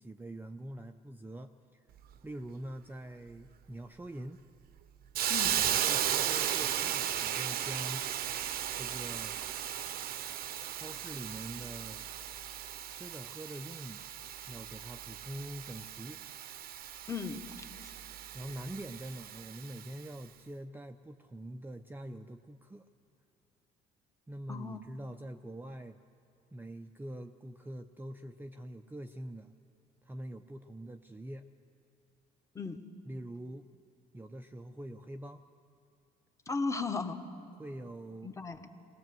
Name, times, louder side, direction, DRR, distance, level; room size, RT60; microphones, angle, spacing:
voice 1, 0.0-1.9 2.2-4.4 5.5-8.1 8.7-9.3 10.7-12.0 12.9-14.1 14.5-16.2 18.3-22.9 24.3-26.0 26.5-29.5 30.0-31.5 33.1-33.7 34.1-35.4 37.6-38.3, right 1 dB, 10° right, 6 dB, 0.6 m, -44 dB
Hiss, 5.1-19.9, right 10 dB, 65° right, 0.8 m, -36 dB
voice 2, 17.1-17.9 24.5-24.8 32.5-32.8 36.5-37.2 38.2-38.6, left 4 dB, 20° left, 6 dB, 1.3 m, -36 dB
20.5 x 19.0 x 7.7 m, 2.6 s
cardioid pair, 110°, 17 cm